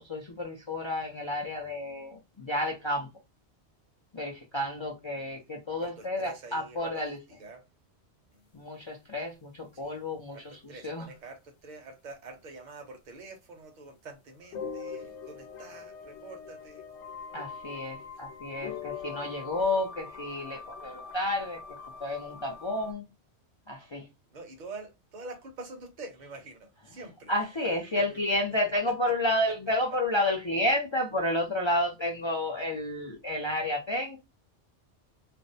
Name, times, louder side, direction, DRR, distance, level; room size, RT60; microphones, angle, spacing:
voice 1, 0.0-3.1 4.1-7.2 8.5-10.4 10.8-11.1 17.3-21.6 22.0-23.0 23.7-24.0 27.3-34.2, left 1 dB, 45° left, 0.4 m, -31 dB
voice 2, 5.8-7.7 8.3-8.4 9.7-10.0 10.3-16.8 18.1-18.2 24.3-27.5 27.8-28.2 29.1-29.2, right 3 dB, 45° right, 0.8 m, -46 dB
sound 1, 14.5-22.9, left 6 dB, 80° left, 0.9 m, -42 dB
2.5 x 2.0 x 2.6 m
omnidirectional pair, 1.2 m